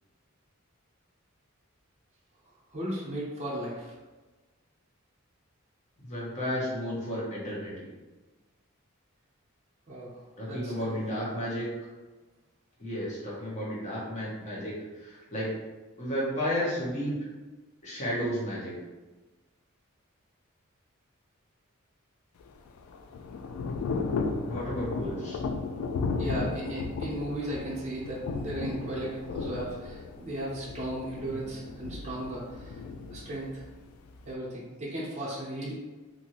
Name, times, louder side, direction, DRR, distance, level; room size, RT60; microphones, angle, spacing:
voice 1, 2.7-3.9 9.9-10.2 10.5-11.0 26.2-32.8 33.1-33.6 34.2-35.7, right 1 dB, 35° right, -6 dB, 0.7 m, -36 dB
voice 2, 6.0-7.9 10.4-11.7 12.8-15.5 16.0-17.2 17.8-18.7 24.4-25.4 31.4-31.5, equal, 35° left, -6 dB, 1.0 m, -32 dB
Thunder / Rain, 22.4-34.3, left 4 dB, 85° left, 0.3 m, -35 dB
2.7 x 2.6 x 2.8 m, 1.2 s
head